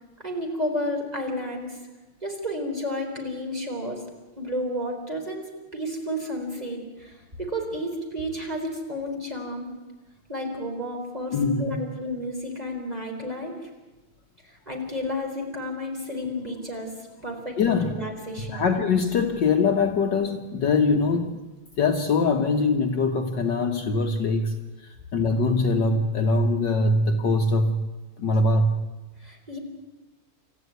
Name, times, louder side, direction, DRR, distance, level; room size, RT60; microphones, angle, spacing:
voice 1, 0.2-1.8 2.2-4.0 4.4-9.7 10.3-13.5 14.4-16.9 17.2-18.7 29.2-29.6, equal, 15° right, 1 dB, 4.3 m, -32 dB
voice 2, 11.3-11.8 17.6-17.9 18.4-21.4 21.8-24.5 24.8-27.8 28.2-28.7, left 3 dB, 55° left, 4 dB, 1.8 m, -23 dB
28.5 x 14.0 x 9.4 m, 1.2 s
omnidirectional pair, 2.4 m